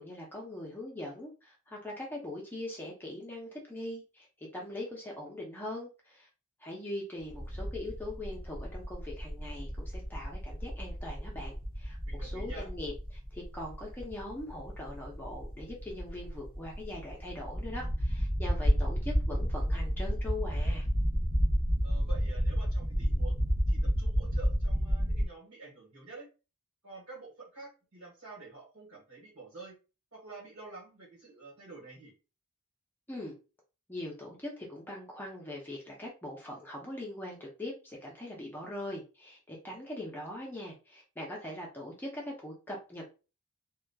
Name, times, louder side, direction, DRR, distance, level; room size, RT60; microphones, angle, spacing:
voice 1, 0.0-6.3 6.6-20.9 33.1-33.4 33.9-43.1, left 1 dB, 10° left, -2 dB, 0.5 m, -41 dB
sound 1, 7.3-25.2, equal, 40° right, 0.9 m, -31 dB
voice 2, 12.0-12.7 21.8-23.4 23.7-26.3 26.8-29.7 30.1-32.1, right 3 dB, 65° right, -2 dB, 1.3 m, -48 dB
2.9 x 2.2 x 2.2 m, 0.32 s
head